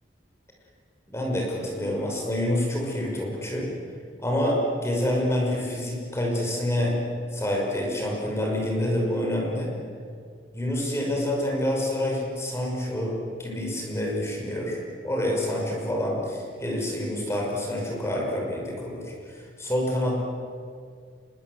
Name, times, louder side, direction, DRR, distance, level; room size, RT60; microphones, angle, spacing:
voice 1, 1.1-3.7 4.2-7.0 7.3-9.7 10.5-20.2, left 1 dB, 15° left, -1 dB, 5.6 m, -27 dB
26.0 x 22.0 x 8.1 m, 2.2 s
head